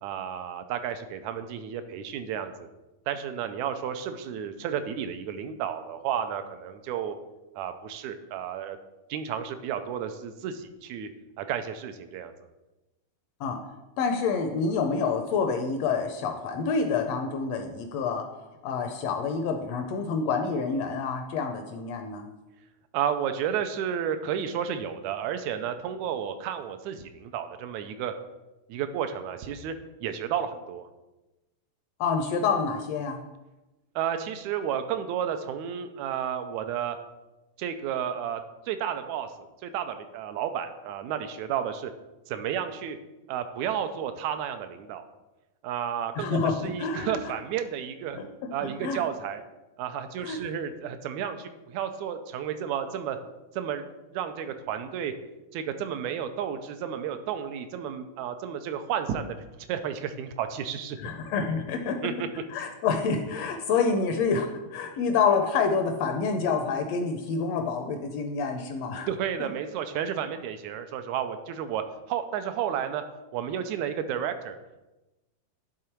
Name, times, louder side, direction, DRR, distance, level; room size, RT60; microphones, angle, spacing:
voice 1, 0.0-2.7 3.1-7.2 7.6-8.8 9.1-11.1 11.4-12.3 22.9-28.1 28.7-30.9 34.0-37.0 37.6-38.4 38.7-39.3 39.6-41.9 42.3-43.0 43.3-45.0 45.6-48.2 48.5-49.4 49.8-53.2 53.5-53.8 54.1-55.1 55.5-59.4 59.7-61.0 62.0-62.3 69.1-73.0 73.3-74.6, right 9 dB, 85° right, 9 dB, 1.9 m, -32 dB
voice 2, 14.0-18.2 18.6-22.2 32.0-33.2 46.2-47.2 48.1-48.2 48.6-49.0 50.2-50.4 61.0-62.0 62.5-69.1 69.4-69.5, left 5 dB, 75° left, 5 dB, 1.6 m, -27 dB
10.5 x 3.8 x 4.5 m, 1.0 s
omnidirectional pair, 3.3 m